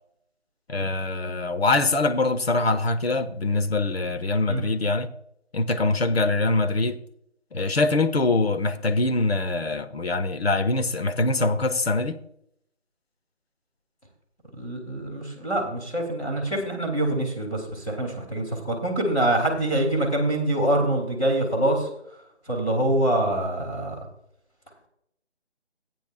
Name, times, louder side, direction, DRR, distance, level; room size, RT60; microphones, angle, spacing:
voice 1, 0.7-5.1 5.5-7.0 7.5-12.2, left 2 dB, 65° left, 1.1 m, -23 dB
voice 2, 14.6-21.9 22.5-23.9, right 1 dB, 5° left, 1.6 m, -25 dB
15.0 x 9.2 x 2.4 m
figure-of-eight pair, 165°, 34 cm